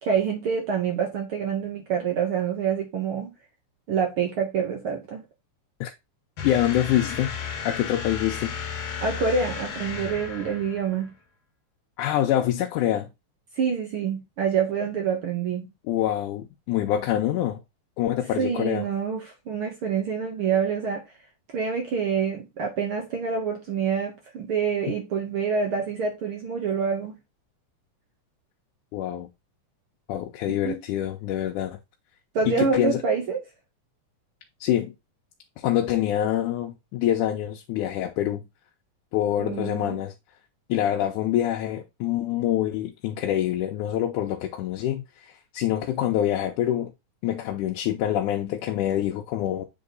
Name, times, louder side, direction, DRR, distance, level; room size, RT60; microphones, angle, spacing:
voice 1, 0.0-3.3 3.9-5.2 9.0-11.1 13.6-15.6 18.4-21.1 21.5-27.1 30.5-30.8 32.3-33.4 39.4-40.0, right 6 dB, 60° right, 1.5 m, -26 dB
voice 2, 6.4-7.3 7.7-8.5 12.0-13.1 15.9-17.6 18.0-18.9 28.9-29.3 30.1-31.8 32.5-33.0 34.6-34.9 35.6-38.4 39.1-40.1 40.7-46.9 47.2-49.7, left 12 dB, 85° left, 2.2 m, -25 dB
sound 1, 6.4-11.1, left 6 dB, 60° left, 2.3 m, -34 dB
7.8 x 3.6 x 4.0 m
omnidirectional pair, 3.5 m